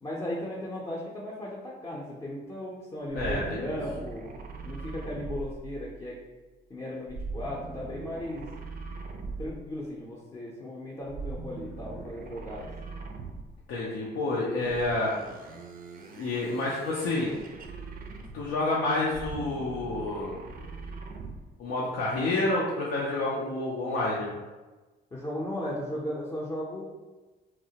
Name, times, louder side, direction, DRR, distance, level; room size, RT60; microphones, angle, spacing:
voice 1, 0.0-4.4 4.6-6.1 6.7-8.5 9.4-12.7 25.1-26.8, left 1 dB, 20° left, -4 dB, 0.5 m, -36 dB
voice 2, 3.1-3.8 13.7-15.1 16.1-17.4 18.2-20.4 21.6-24.3, left 2 dB, 90° left, -5 dB, 0.5 m, -29 dB
sound 1, 3.1-6.1 7.1-9.8 11.0-13.6 14.6-18.6 19.0-21.5, right 3 dB, 45° right, 0.4 m, -41 dB
2.8 x 2.0 x 2.7 m, 1.2 s
cardioid pair, 90°, 20 cm